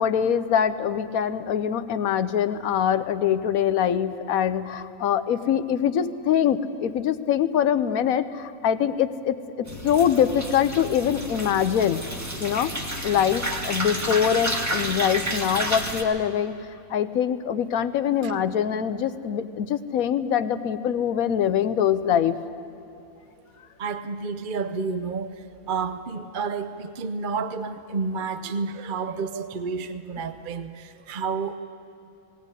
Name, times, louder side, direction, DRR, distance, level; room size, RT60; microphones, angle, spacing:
voice 1, 0.0-12.0 12.4-16.5 16.9-22.4, left 9 dB, 90° left, 12 dB, 1.2 m, -24 dB
sound 1, 9.7-16.0, right 1 dB, 10° right, 1.6 m, -30 dB
voice 2, 23.8-31.6, right 5 dB, 45° right, 10 dB, 0.7 m, -30 dB
19.0 x 18.0 x 9.7 m, 2.7 s
omnidirectional pair, 1.4 m